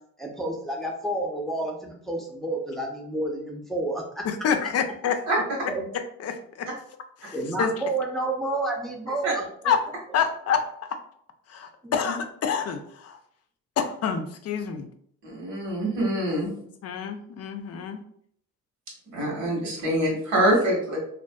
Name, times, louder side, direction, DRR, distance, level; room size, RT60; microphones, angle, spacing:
voice 1, 0.2-4.3 5.7-5.9 7.3-9.7 11.8-12.0, right 2 dB, ahead, 0 dB, 0.5 m, -30 dB
voice 2, 4.2-5.2 6.2-6.7 7.2-7.7 9.6-9.8 10.1-10.6 10.9-11.0 11.5-13.2 13.8-14.9 16.8-18.0 19.4-19.5, left 7 dB, 55° left, 7 dB, 0.4 m, -27 dB
voice 3, 15.2-16.5 19.1-21.0, right 1 dB, 85° right, -2 dB, 1.3 m, -24 dB
2.5 x 2.4 x 2.2 m, 0.65 s
cardioid pair, 90°, 30 cm